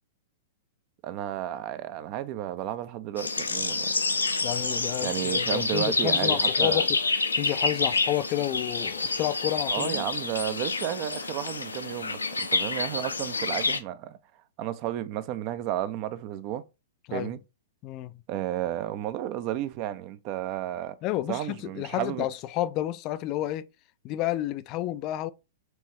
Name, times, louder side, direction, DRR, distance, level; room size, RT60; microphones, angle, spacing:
voice 1, 1.0-3.9 5.0-6.9 9.7-14.2 14.6-16.6 17.1-17.4 18.3-21.0 21.3-22.3, right 12 dB, 40° right, 0.5 m, -32 dB
sound 1, 3.2-13.8, left 3 dB, 85° left, 0.5 m, -28 dB
voice 2, 4.4-6.9 7.3-10.1 17.1-17.3 17.8-18.2 21.0-23.7 24.0-25.3, left 14 dB, 40° left, 0.3 m, -30 dB
4.6 x 3.1 x 2.8 m
figure-of-eight pair, 105°, 0 cm